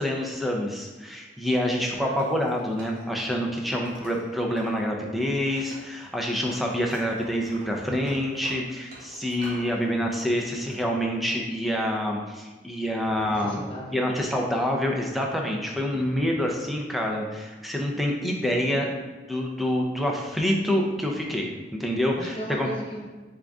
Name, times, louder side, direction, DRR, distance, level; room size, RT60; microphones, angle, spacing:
voice 1, 0.0-13.6 13.9-22.7, equal, ahead, 0 dB, 0.5 m, -27 dB
voice 2, 1.8-2.2 9.7-10.0 13.2-14.2 15.9-16.3 22.2-23.1, right 1 dB, 30° left, -4 dB, 0.9 m, -37 dB
Wood, 2.1-4.8 5.1-6.2 6.5-9.7 10.1-10.8, right 2 dB, 50° right, 1.1 m, -47 dB
3.7 x 3.6 x 3.5 m, 1.3 s
head